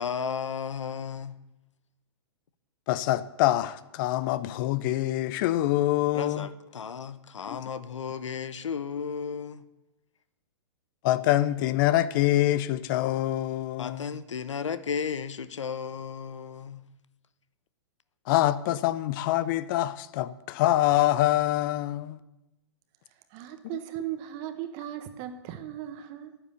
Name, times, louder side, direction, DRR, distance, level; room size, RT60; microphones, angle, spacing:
voice 1, 0.0-1.4 6.1-9.6 13.8-16.9, left 6 dB, 85° left, 0.8 m, -34 dB
voice 2, 2.9-6.5 7.5-7.6 11.0-14.1 18.3-22.2, left 14 dB, 45° left, 0.7 m, -25 dB
voice 3, 23.1-26.4, right 12 dB, 40° right, 1.2 m, -37 dB
10.5 x 9.6 x 7.0 m
hypercardioid pair, 120°, 15 cm